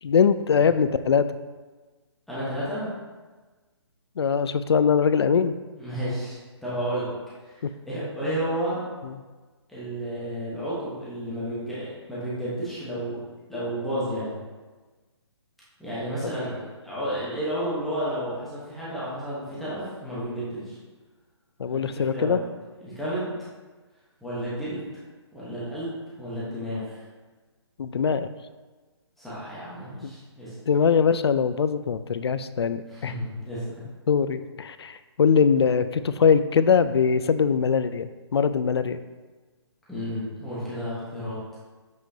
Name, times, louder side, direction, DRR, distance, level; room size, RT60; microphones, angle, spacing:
voice 1, 0.0-1.4 4.2-5.5 7.6-7.7 9.0-9.1 21.6-22.4 27.8-28.3 30.0-30.1 30.7-33.1 34.1-39.0, left 6 dB, 60° left, 13 dB, 0.4 m, -22 dB
voice 2, 2.3-2.9 5.8-7.1 7.4-8.8 9.7-13.2 13.5-14.4 15.8-20.8 21.7-22.4 22.8-23.3 24.2-24.8 25.3-27.0 29.2-30.6 32.9-33.8 39.9-41.4, equal, ahead, -11 dB, 1.1 m, -32 dB
7.4 x 6.0 x 2.8 m, 1.3 s
hypercardioid pair, 170°, 15 cm